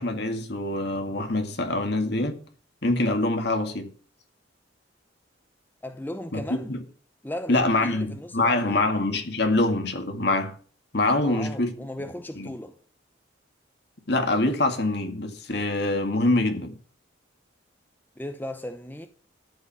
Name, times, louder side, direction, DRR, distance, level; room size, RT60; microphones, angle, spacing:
voice 1, 0.0-2.4 2.8-3.9 6.3-6.8 7.5-10.5 10.9-11.7 12.4-12.5 14.1-16.7, left 2 dB, 55° left, 2.2 m, -25 dB
voice 2, 5.8-6.7 7.2-8.9 11.2-12.8 18.2-19.1, left 1 dB, 10° left, 0.7 m, -36 dB
13.5 x 5.2 x 8.8 m
head